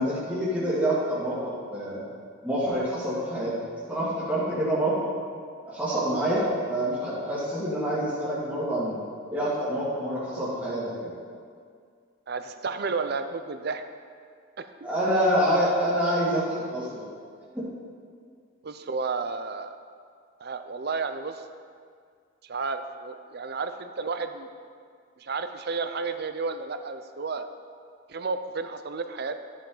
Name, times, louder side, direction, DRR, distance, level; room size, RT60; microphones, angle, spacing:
voice 1, 0.0-2.0 2.4-3.5 3.9-5.1 5.7-9.0 9.3-11.1 14.8-17.1 17.5-17.6, equal, 5° right, -9 dB, 1.9 m, -27 dB
voice 2, 12.3-13.8 14.6-14.9 18.6-19.8 20.4-21.4 22.4-24.5 25.2-27.5 28.1-29.4, right 4 dB, 50° right, 9 dB, 0.5 m, -32 dB
12.5 x 7.1 x 3.9 m, 2.1 s
head